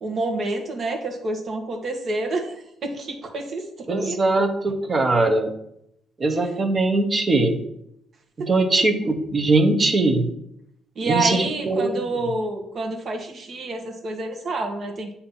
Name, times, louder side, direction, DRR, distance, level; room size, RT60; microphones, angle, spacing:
voice 1, 0.0-4.2 10.9-15.1, right 2 dB, 50° right, 3 dB, 1.3 m, -28 dB
voice 2, 3.9-5.5 6.2-7.6 8.4-10.3 11.0-12.0, right 2 dB, 35° right, 6 dB, 1.0 m, -21 dB
8.6 x 2.9 x 5.5 m, 0.77 s
cardioid pair, 90°, 0 cm